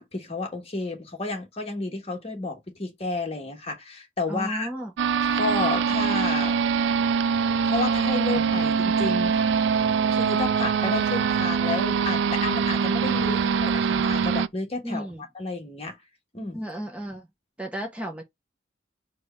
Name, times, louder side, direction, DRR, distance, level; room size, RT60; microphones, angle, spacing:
voice 1, 0.1-4.7 5.4-6.6 7.6-9.3 10.1-15.1 15.3-16.0 16.3-16.6, left 3 dB, 35° left, 1.2 m, -31 dB
voice 2, 4.3-4.9 14.8-15.2 16.5-17.3 17.6-18.2, equal, 5° right, 0.7 m, -33 dB
sound 1, 5.0-14.5, right 6 dB, 90° right, 0.3 m, -23 dB
4.5 x 2.3 x 4.2 m
head